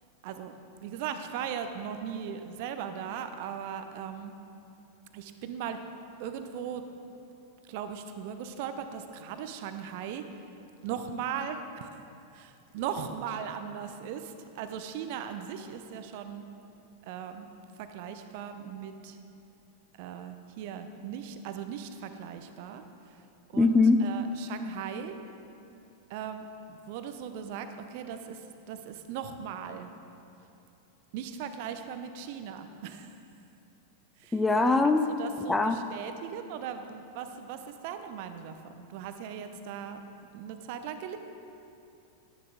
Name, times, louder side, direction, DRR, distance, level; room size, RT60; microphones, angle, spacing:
voice 1, 0.2-4.3 5.1-5.8 6.2-7.0 7.7-10.2 10.8-11.9 12.3-16.4 17.0-17.5 17.8-19.2 20.0-22.8 23.5-25.2 26.1-29.9 31.1-33.2 34.2-34.4 35.1-40.1 40.3-41.2, right 8 dB, 50° right, 8 dB, 0.7 m, -38 dB
voice 2, 23.5-24.0 34.3-35.0 35.5-35.8, left 3 dB, 10° left, 7 dB, 0.4 m, -22 dB
11.5 x 10.5 x 3.8 m, 2.8 s
figure-of-eight pair, 90°, 0 cm